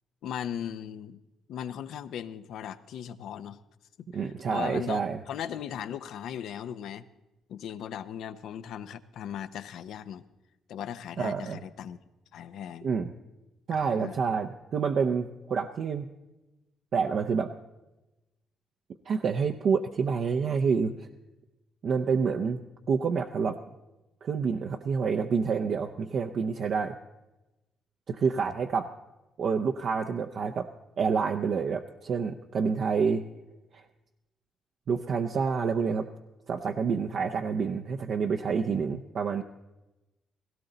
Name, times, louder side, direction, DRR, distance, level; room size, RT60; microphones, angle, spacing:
voice 1, 0.2-1.2 1.5-3.6 4.1-7.1 7.5-10.2 10.7-12.0 12.3-12.9 13.7-14.2, left 9 dB, 80° left, 12 dB, 0.6 m, -38 dB
voice 2, 4.1-5.2 11.2-11.6 12.8-13.1 13.7-16.1 16.9-17.5 19.1-21.1 21.8-22.6 22.9-23.6 24.2-27.0 28.1-28.9 29.4-30.7 31.0-33.2 33.7-33.8 34.9-36.1 36.5-39.4, right 5 dB, 60° right, 4 dB, 0.6 m, -28 dB
17.0 x 16.5 x 3.9 m, 1.0 s
cardioid pair, 90°, 0 cm